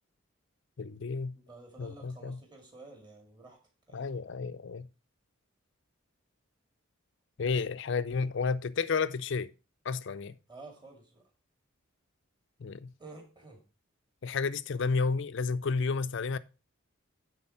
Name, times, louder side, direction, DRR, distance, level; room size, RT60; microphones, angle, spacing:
voice 1, 0.8-1.3 1.8-2.4 3.9-4.9 7.4-9.5 9.8-10.4 12.6-12.9 14.2-16.4, left 4 dB, 60° left, 0.5 m, -31 dB
voice 2, 1.3-3.6 3.9-4.1 10.5-11.2 13.0-13.6, right 3 dB, 20° right, 2.3 m, -51 dB
9.7 x 4.1 x 5.7 m
head